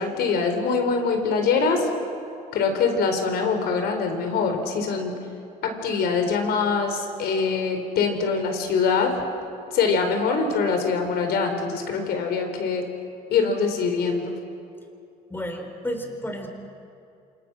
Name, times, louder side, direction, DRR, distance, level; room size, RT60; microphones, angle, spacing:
voice 1, 0.0-1.9 2.5-5.2 5.6-9.1 9.7-12.9 13.3-14.4, left 5 dB, 70° left, 5 dB, 4.6 m, -23 dB
voice 2, 15.3-16.5, equal, 10° left, 4 dB, 4.4 m, -31 dB
28.5 x 27.0 x 6.4 m, 2.6 s
cardioid pair, 110°, 17 cm